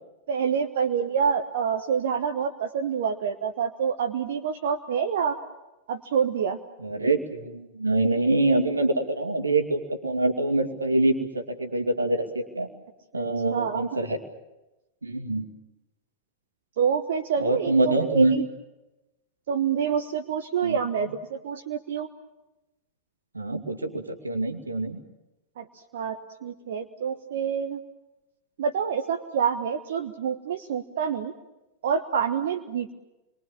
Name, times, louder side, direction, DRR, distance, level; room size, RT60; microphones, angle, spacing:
voice 1, 0.3-5.4 5.9-6.6 13.1-13.3 13.5-14.0 16.8-18.5 19.5-22.1 25.6-25.7 25.9-27.8 28.6-31.3 31.8-32.9, right 7 dB, 60° right, 4 dB, 1.3 m, -27 dB
voice 2, 6.8-12.7 13.1-14.2 15.0-15.5 17.4-18.4 20.6-20.8 23.3-25.0, right 2 dB, 80° right, 6 dB, 2.5 m, -25 dB
29.5 x 23.0 x 7.3 m, 1.0 s
figure-of-eight pair, 90°, 0 cm